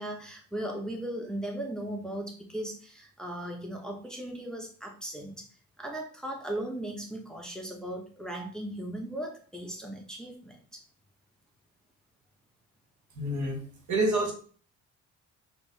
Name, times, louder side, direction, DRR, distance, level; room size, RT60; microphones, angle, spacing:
voice 1, 0.0-5.5 5.8-10.8, right 1 dB, ahead, 1 dB, 0.9 m, -37 dB
voice 2, 13.1-13.6 13.9-14.3, right 2 dB, 70° right, 2 dB, 1.5 m, -27 dB
4.4 x 2.6 x 4.0 m, 0.42 s
cardioid pair, 90°, 30 cm